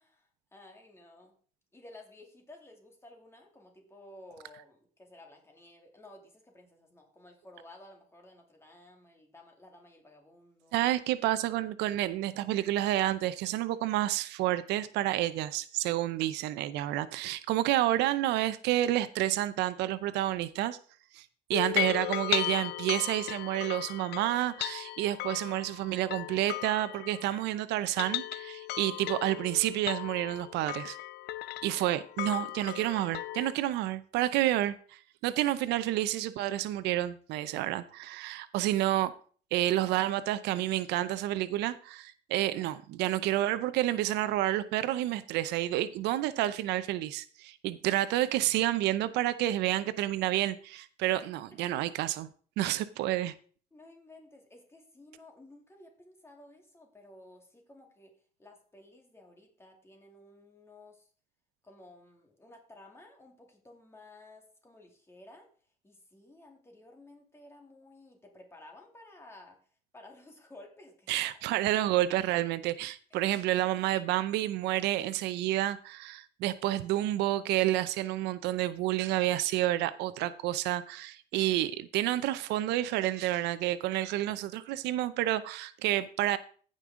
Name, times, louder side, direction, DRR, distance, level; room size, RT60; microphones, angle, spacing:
voice 1, 0.0-1.3 1.7-10.9 51.5-51.8 53.7-58.1 58.4-61.1 61.6-65.5 65.8-69.6 69.9-71.8 73.1-73.2, left 2 dB, 15° left, 2.5 m, -54 dB
voice 2, 10.7-20.8 21.1-21.2 21.5-31.0 31.6-34.8 35.2-39.1 39.5-52.3 52.6-53.3 71.1-86.4, right 14 dB, 90° right, 0.6 m, -29 dB
sound 1, 21.5-27.5 27.8-33.5, left 17 dB, 80° left, 0.4 m, -36 dB
15.5 x 5.4 x 3.7 m
cardioid pair, 110°, 17 cm